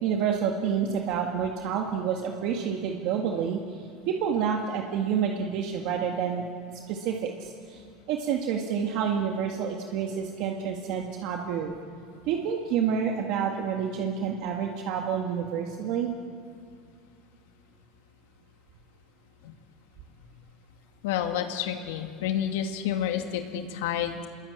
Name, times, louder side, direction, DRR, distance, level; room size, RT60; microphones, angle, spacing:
voice 1, 0.0-6.5 6.9-7.8 8.1-11.7 12.3-16.1, right 7 dB, 50° right, 2 dB, 1.9 m, -28 dB
voice 2, 21.0-24.3, left 9 dB, 80° left, 5 dB, 2.3 m, -29 dB
27.5 x 22.0 x 8.8 m, 2.3 s
supercardioid pair, 165°, 0 cm